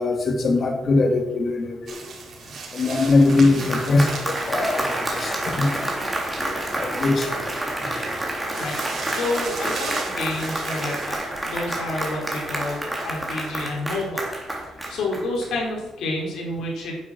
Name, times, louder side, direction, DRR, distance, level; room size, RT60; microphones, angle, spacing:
voice 1, 0.0-2.0 2.7-5.8 6.8-7.4, left 3 dB, 40° left, 4 dB, 2.2 m, -21 dB
sound 1, 1.9-11.1, right 4 dB, 50° right, 4.5 m, -38 dB
voice 2, 3.3-3.7 8.6-17.0, left 2 dB, 65° left, -1 dB, 5.0 m, -30 dB
Applause, 3.3-15.7, right 1 dB, 10° right, 3.1 m, -29 dB
10.5 x 7.5 x 7.9 m, 1.1 s
cardioid pair, 130°, 0 cm